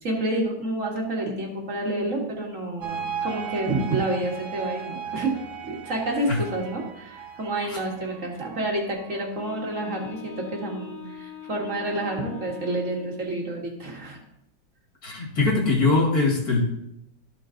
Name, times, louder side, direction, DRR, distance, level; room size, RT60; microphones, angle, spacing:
voice 1, 0.0-5.3 5.7-14.2, right 1 dB, 45° right, -1 dB, 2.2 m, -29 dB
sound 1, 2.8-9.2, right 7 dB, 70° right, 1.5 m, -36 dB
Wind instrument woodwind instrument, 9.3-13.4, left 8 dB, 80° left, 2.1 m, -42 dB
voice 2, 15.0-16.6, left 3 dB, 55° left, -1 dB, 2.5 m, -22 dB
13.5 x 4.7 x 3.9 m, 0.81 s
omnidirectional pair, 1.9 m